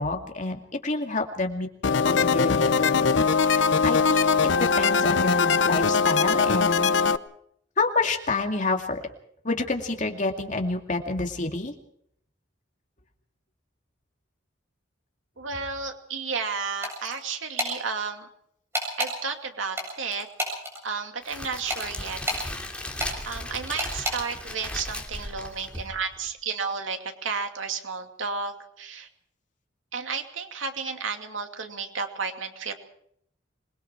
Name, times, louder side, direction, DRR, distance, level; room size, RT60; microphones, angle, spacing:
voice 1, 0.0-3.1 3.4-6.9 7.8-9.0 9.4-11.7, left 3 dB, 40° left, 4 dB, 2.4 m, -28 dB
sound 1, 1.8-7.2, left 5 dB, 65° left, 0.7 m, -21 dB
voice 2, 15.4-18.3 19.0-20.3 20.8-22.2 23.2-29.1 29.9-32.7, right 5 dB, 85° right, 5 dB, 2.6 m, -32 dB
sound 2, 16.8-17.2 17.6-17.7 18.7-19.1 19.8-20.8 21.7-22.5 23.0-23.1 23.8-24.2, equal, 15° right, 7.9 m, -29 dB
Crackle, 21.2-26.3, left 1 dB, 5° left, 2.6 m, -36 dB
26.0 x 21.5 x 4.7 m, 0.67 s
head